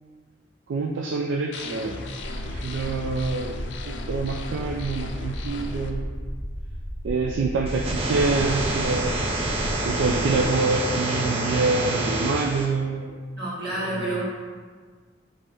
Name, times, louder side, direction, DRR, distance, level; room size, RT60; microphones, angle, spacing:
voice 1, 0.7-2.0 2.4-3.5 4.1-6.1 7.0-9.1 9.8-13.1 13.7-14.2, right 3 dB, 85° right, 0 dB, 0.3 m, -26 dB
sound 1, 1.5-5.9, left 3 dB, 75° left, 0.4 m, -36 dB
sound 2, 2.2-10.5, equal, 5° left, 1.2 m, -34 dB
sound 3, 7.7-12.7, right 2 dB, 30° right, 0.5 m, -27 dB
voice 2, 13.3-14.2, right 1 dB, 60° right, -7 dB, 1.4 m, -29 dB
5.3 x 2.8 x 3.4 m, 1.5 s
head